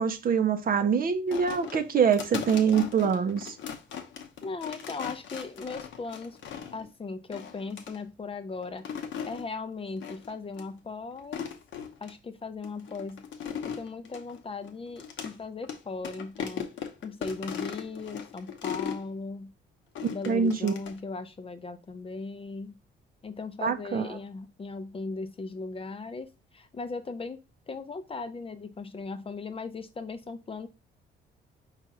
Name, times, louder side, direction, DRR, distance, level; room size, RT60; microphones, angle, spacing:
voice 1, 0.0-3.6 20.3-20.8 23.6-24.2, right 6 dB, 45° right, 0.6 m, -25 dB
sound 1, 1.3-6.9 7.3-8.0 8.6-9.4 10.0-10.3 10.6-10.7 11.2-12.1 12.6-15.3 15.6-15.8 16.0-19.0 19.9-21.0, left 8 dB, 70° left, 0.8 m, -38 dB
voice 2, 4.4-6.4 6.7-8.9 9.3-11.4 12.0-13.2 13.6-19.5 20.1-22.8 23.2-27.4 27.7-30.7, left 4 dB, 30° left, 0.5 m, -38 dB
4.9 x 2.5 x 4.1 m
cardioid pair, 90°, 20 cm